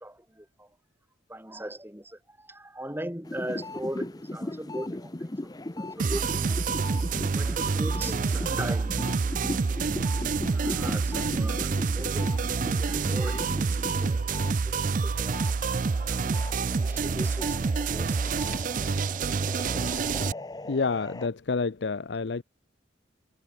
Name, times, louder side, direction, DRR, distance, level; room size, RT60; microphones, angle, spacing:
voice 1, 0.0-0.7 1.3-5.3 5.7-6.6 7.4-10.1 10.5-14.2 14.7-14.8 15.0-15.6 15.9-16.3 16.8-18.2, right 1 dB, 10° right, 2.5 m, -40 dB
sound 1, 3.2-14.5 14.9-21.3, left 1 dB, 20° left, 0.6 m, -38 dB
sound 2, 6.0-20.3, right 4 dB, 40° right, 0.4 m, -27 dB
voice 2, 20.6-22.4, left 4 dB, 60° left, 0.6 m, -28 dB
head